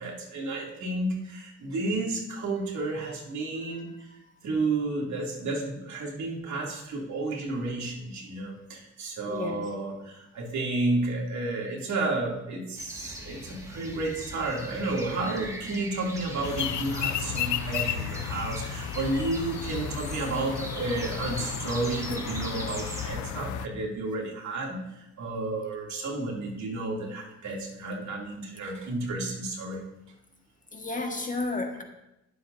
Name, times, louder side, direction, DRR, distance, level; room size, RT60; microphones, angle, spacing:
voice 1, 0.0-4.1 4.4-29.8, right 2 dB, 70° right, -2 dB, 2.7 m, -31 dB
voice 2, 9.3-9.6 30.7-31.8, left 2 dB, 25° left, 3 dB, 1.5 m, -32 dB
sound 1, 12.8-23.1, equal, 10° right, 1.9 m, -40 dB
sound 2, 16.4-23.7, left 10 dB, 75° left, 0.6 m, -33 dB
20.5 x 7.5 x 2.6 m, 0.89 s
cardioid pair, 90°, 30 cm